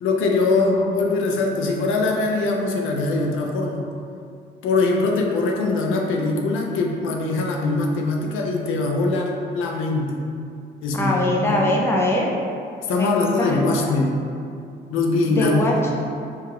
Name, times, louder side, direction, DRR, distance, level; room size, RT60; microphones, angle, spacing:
voice 1, 0.0-3.9 4.6-10.2 10.8-11.6 12.9-14.1 14.9-15.8, left 3 dB, 90° left, 1 dB, 0.4 m, -22 dB
voice 2, 0.6-0.9 10.9-12.3 12.9-14.0 15.2-16.0, left 1 dB, 10° left, -3 dB, 0.5 m, -23 dB
2.9 x 2.4 x 2.8 m, 2.5 s
cardioid pair, 90°, 20 cm